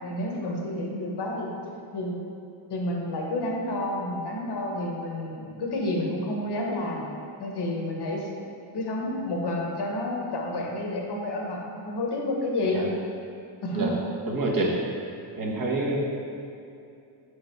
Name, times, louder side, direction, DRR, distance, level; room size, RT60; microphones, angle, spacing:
voice 1, 0.0-1.5 1.9-2.2 2.7-7.0 7.4-8.5 8.7-12.9 13.6-13.9, left 1 dB, 55° left, -1 dB, 1.3 m, -30 dB
voice 2, 14.3-14.7 15.4-16.1, right 2 dB, 45° right, -2 dB, 1.3 m, -26 dB
5.1 x 5.0 x 4.6 m, 2.5 s
cardioid pair, 90°, 47 cm